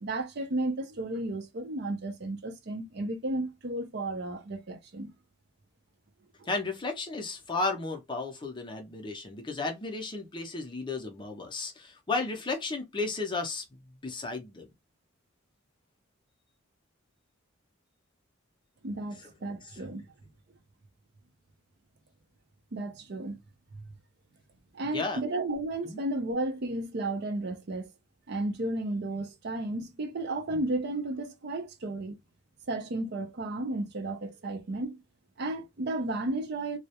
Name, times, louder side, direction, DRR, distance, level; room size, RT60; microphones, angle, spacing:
voice 1, 0.0-5.1 6.4-6.5 18.8-20.0 22.7-23.4 23.7-23.9 24.7-27.9 28.3-32.2 32.7-35.0 35.4-36.8, right 2 dB, 55° right, 0.5 m, -33 dB
voice 2, 6.5-14.7 19.7-19.9 24.9-25.2 25.9-26.0, left 3 dB, 25° left, 0.5 m, -34 dB
2.3 x 2.0 x 2.8 m
head